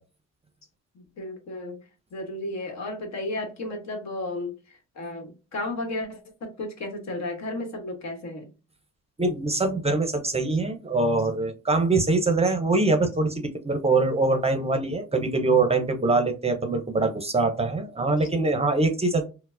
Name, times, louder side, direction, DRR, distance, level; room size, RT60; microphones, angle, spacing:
voice 1, 1.2-1.8 2.1-8.5 18.2-18.3, left 2 dB, 60° left, 4 dB, 1.2 m, -33 dB
voice 2, 9.2-19.3, right 3 dB, 20° right, 6 dB, 0.6 m, -23 dB
4.3 x 2.1 x 2.5 m, 0.32 s
cardioid pair, 90°, 30 cm